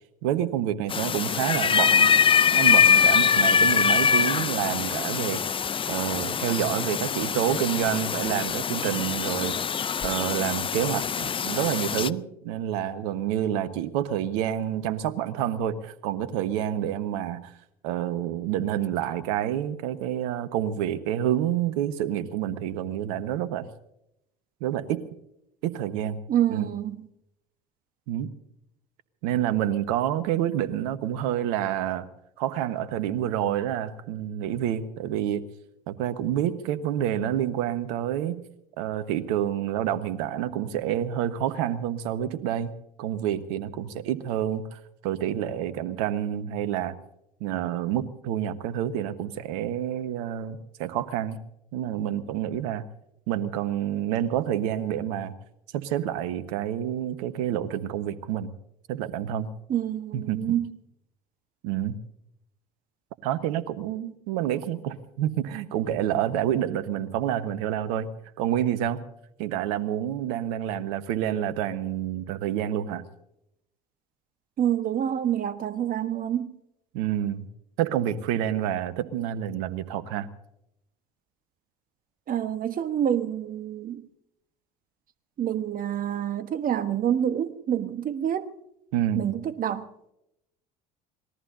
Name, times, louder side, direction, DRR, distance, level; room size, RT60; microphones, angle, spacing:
voice 1, 0.2-2.2 2.5-5.4 5.9-9.6 10.0-17.5 17.8-23.7 24.6-25.1 25.6-26.2 26.5-26.7 28.1-28.3 29.2-32.1 32.4-35.4 35.9-38.4 38.8-47.0 47.4-51.4 51.7-52.9 53.3-55.3 55.7-58.5 58.9-59.5 60.1-60.6 61.6-62.0 63.2-68.1 68.4-69.0 69.4-73.0 76.9-77.5 77.8-80.3 88.9-89.3, right 11 dB, 70° right, 1.3 m, -28 dB
sound 1, 0.9-12.1, left 7 dB, 25° left, 0.6 m, -23 dB
voice 2, 26.3-27.1 59.7-60.7 74.6-76.6 82.3-84.0 85.4-88.5 89.1-89.9, right 10 dB, 40° right, 1.3 m, -27 dB
26.0 x 19.5 x 2.7 m
hypercardioid pair, 70°, 21 cm